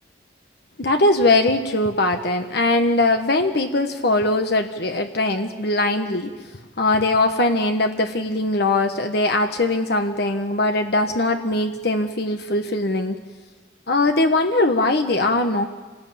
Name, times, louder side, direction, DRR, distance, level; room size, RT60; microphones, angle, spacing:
voice 1, 0.8-6.3 6.8-13.2 13.9-15.6, left 2 dB, 55° left, 6 dB, 1.2 m, -21 dB
27.5 x 19.0 x 8.7 m, 1.4 s
head